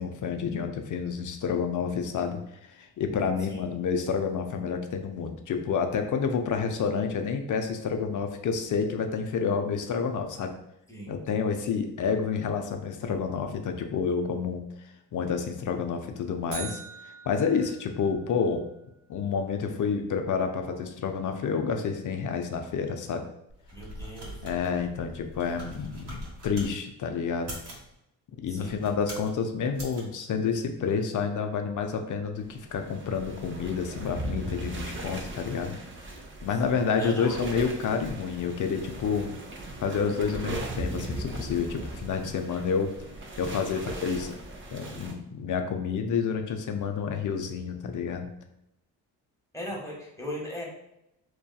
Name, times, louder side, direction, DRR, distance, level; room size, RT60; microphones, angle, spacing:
voice 1, 0.0-2.4 2.8-10.5 11.1-14.6 15.1-18.6 19.1-23.3 24.4-27.5 28.4-35.8 36.4-39.3 39.8-43.0 43.4-44.3 44.7-48.3, left 6 dB, 45° left, 5 dB, 0.5 m, -29 dB
sound 1, 16.5-18.6, right 6 dB, 90° right, 0.9 m, -43 dB
sound 2, 23.5-26.7 27.3-27.9 28.6-29.3 29.7-30.0, right 1 dB, 65° right, 1.2 m, -42 dB
voice 2, 23.7-24.4 28.5-28.8 36.6-36.7 37.0-37.4 49.5-50.6, equal, 5° left, -2 dB, 0.9 m, -38 dB
sound 3, 32.5-45.1, right 1 dB, 30° right, 0.5 m, -38 dB
2.6 x 2.2 x 2.2 m, 0.82 s
supercardioid pair, 55°, 43 cm